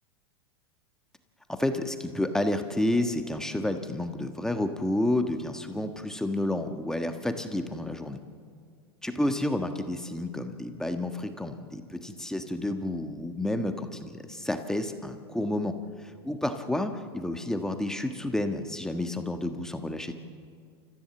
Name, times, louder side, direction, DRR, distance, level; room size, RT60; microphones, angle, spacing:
voice 1, 1.5-8.2 9.0-15.7 16.0-20.1, left 1 dB, 5° left, 6 dB, 1.4 m, -30 dB
29.5 x 14.5 x 7.2 m, 2.1 s
hypercardioid pair, 100°, 14 cm